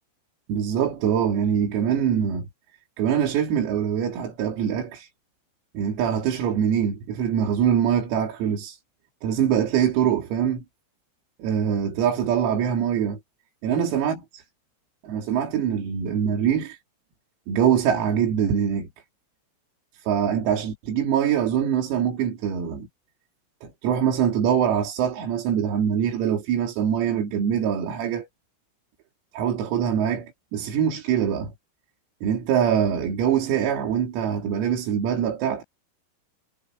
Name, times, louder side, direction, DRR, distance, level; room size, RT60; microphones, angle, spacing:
voice 1, 0.5-2.5 3.0-5.1 5.8-8.8 9.2-10.6 11.4-13.2 13.6-14.4 15.0-16.8 17.5-18.9 20.0-22.9 23.6-28.3 29.3-31.5 32.2-35.6, right 8 dB, 90° right, 6.3 m, -23 dB
omnidirectional pair, 6.0 m